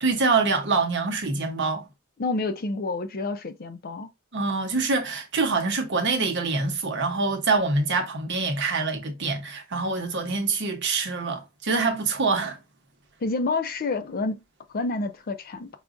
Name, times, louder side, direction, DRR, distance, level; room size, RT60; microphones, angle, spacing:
voice 1, 0.0-1.9 4.3-12.6, right 4 dB, 60° right, 0.9 m, -25 dB
voice 2, 2.2-4.1 13.2-14.4 14.7-15.7, left 3 dB, 45° left, 0.5 m, -28 dB
4.9 x 2.3 x 2.5 m
head